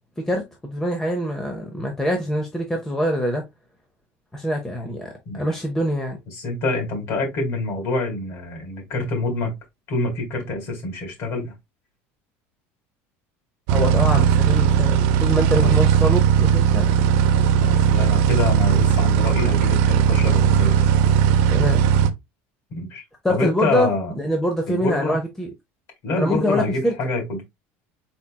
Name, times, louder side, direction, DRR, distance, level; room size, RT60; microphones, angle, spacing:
voice 1, 0.2-3.4 4.3-6.2 13.7-16.9 21.5-21.8 23.2-23.9 24.2-25.5 26.2-26.9, equal, 5° left, 0.7 m, -24 dB
voice 2, 6.3-9.5 9.9-11.5 15.5-15.7 17.6-20.8 22.8-23.0 23.3-24.1 24.7-25.2 26.0-27.4, left 2 dB, 45° left, 2.3 m, -26 dB
sound 1, 13.7-22.1, right 8 dB, 65° right, 0.6 m, -17 dB
4.9 x 4.3 x 2.2 m
cardioid pair, 165°, 6 cm